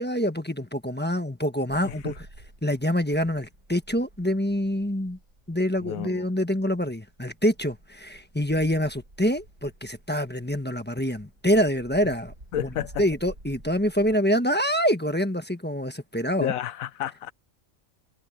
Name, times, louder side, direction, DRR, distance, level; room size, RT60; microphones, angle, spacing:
voice 1, 0.0-2.1 2.6-5.2 5.5-12.7 13.0-16.5, equal, 10° left, 1.1 m, -26 dB
sound 1, 1.7-14.2, right 1 dB, 60° right, 8.1 m, -50 dB
voice 2, 1.8-2.1 5.8-6.3 12.5-13.0 16.4-17.3, left 11 dB, 80° left, 1.2 m, -31 dB
omnidirectional pair, 1.5 m